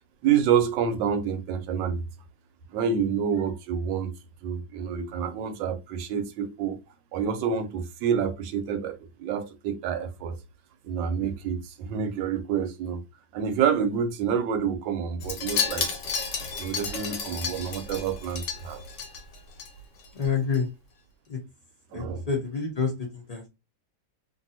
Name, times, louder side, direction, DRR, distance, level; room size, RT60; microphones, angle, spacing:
voice 1, 0.2-2.0 2.7-4.1 4.4-6.8 7.1-10.4 10.8-13.0 13.3-15.9 16.6-18.8 21.9-22.2, right 7 dB, 80° right, 1.3 m, -28 dB
Wind chime, 15.2-19.7 20.0-20.3 20.5-20.6, left 5 dB, 70° left, 1.4 m, -32 dB
voice 2, 20.1-20.7 21.3-21.4 21.9-23.5, left 5 dB, 50° left, 0.4 m, -28 dB
2.9 x 2.7 x 2.7 m
omnidirectional pair, 2.0 m